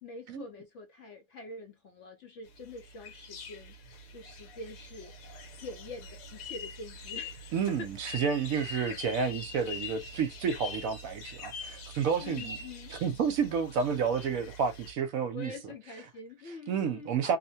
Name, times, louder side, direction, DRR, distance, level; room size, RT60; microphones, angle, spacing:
voice 1, 0.0-7.9 8.7-9.0 12.2-12.9 15.3-17.4, left 3 dB, 60° left, 0.8 m, -45 dB
sound 1, 2.5-14.9, left 3 dB, 90° left, 1.3 m, -44 dB
voice 2, 7.5-12.6 12.9-15.5 16.7-17.4, right 6 dB, 65° right, 1.0 m, -30 dB
2.8 x 2.1 x 2.7 m
omnidirectional pair, 1.7 m